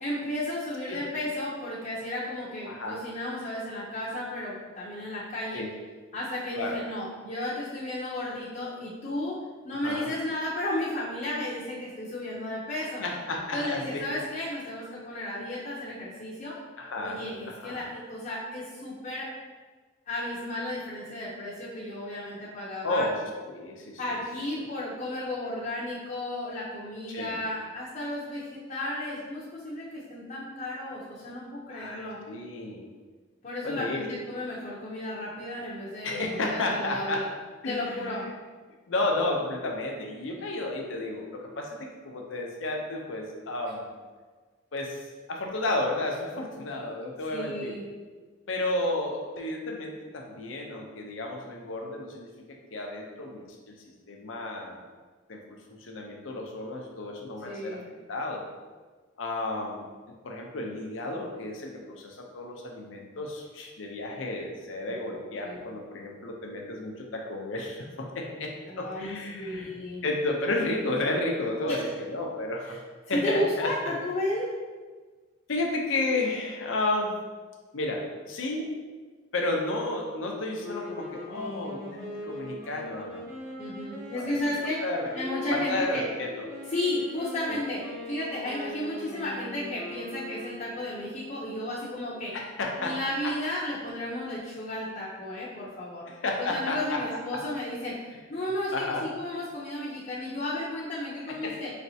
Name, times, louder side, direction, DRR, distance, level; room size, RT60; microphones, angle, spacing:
voice 1, 0.0-5.6 6.1-9.4 9.6-13.0 13.5-16.6 17.0-19.3 20.1-23.1 24.0-32.2 33.4-37.3 37.6-38.2 47.3-47.8 57.4-57.9 65.1-65.6 68.7-70.0 71.6-71.8 73.1-74.5 83.6-84.8 85.1-86.1 86.7-92.4 92.8-96.1 96.4-98.0 98.3-98.7 99.0-101.7, left 1 dB, 40° left, -7 dB, 0.7 m, -33 dB
voice 2, 2.7-3.0 5.5-5.7 6.5-6.8 9.8-10.1 13.0-14.0 16.8-17.9 22.8-23.1 23.4-24.2 27.1-27.4 31.7-32.9 33.6-34.1 36.0-37.2 37.6-38.3 38.9-43.9 44.7-47.8 48.5-53.7 54.1-54.8 55.3-57.8 58.1-58.4 59.2-59.8 60.2-69.7 70.0-72.8 73.1-73.9 75.5-77.2 77.7-78.7 79.3-83.3 83.9-84.4 84.8-85.1 85.5-86.5 87.5-87.6 92.3-93.0 93.2-93.3 96.1-97.4 98.7-99.0 101.4-101.6, left 2 dB, 80° left, 1 dB, 0.6 m, -32 dB
sound 1, 80.6-91.0, left 1 dB, 15° right, 0.9 m, -41 dB
4.3 x 3.2 x 2.7 m, 1.4 s
head